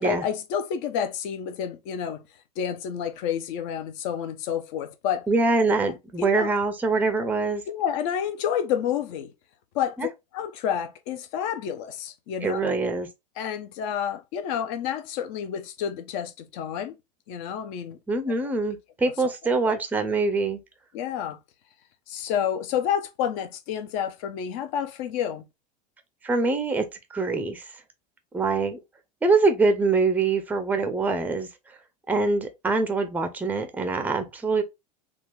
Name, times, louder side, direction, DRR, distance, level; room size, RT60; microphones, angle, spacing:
voice 1, 0.0-2.2 2.6-5.3 6.2-6.5 7.7-9.3 9.7-12.7 13.4-17.0 17.3-18.0 18.3-18.4 19.6-19.7 20.9-21.4 22.1-25.5, left 9 dB, 50° left, 0.7 m, -29 dB
voice 2, 5.3-7.6 10.0-10.1 12.4-13.1 18.1-20.6 26.2-26.9 27.1-27.6 28.3-28.8 29.2-31.5 32.1-34.6, right 3 dB, 10° right, 0.5 m, -24 dB
3.6 x 2.3 x 3.2 m
figure-of-eight pair, 80°, 21 cm